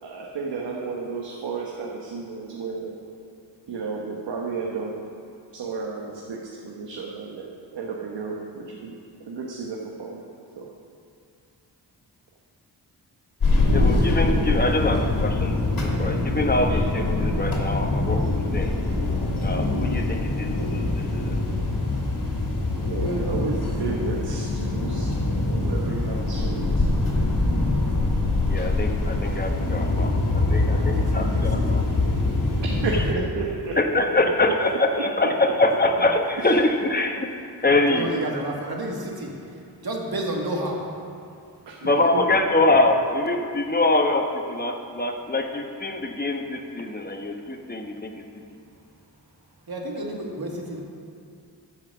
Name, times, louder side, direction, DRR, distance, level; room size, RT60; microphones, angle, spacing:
voice 1, 0.0-2.9 3.7-4.9 5.5-8.9 9.2-10.3 10.6-10.7 16.7-16.8 22.8-26.7 32.8-34.3 35.0-35.1 36.3-36.5 38.0-38.2 41.6-41.8 42.1-42.2, right 4 dB, 85° right, -2 dB, 1.2 m, -32 dB
sound 1, 13.4-33.1, left 2 dB, 55° left, 2.8 m, -24 dB
voice 2, 13.7-18.7 19.4-21.4 28.5-31.8 33.8-37.3 37.6-38.1 41.8-48.1, left 2 dB, 20° left, 3 dB, 1.3 m, -24 dB
voice 3, 30.7-31.9 32.3-32.6 37.8-40.9 41.8-42.1 47.1-47.6 49.7-50.8, right 1 dB, 60° right, -1 dB, 2.2 m, -32 dB
14.0 x 5.8 x 6.2 m, 2.5 s
cardioid pair, 60°, 41 cm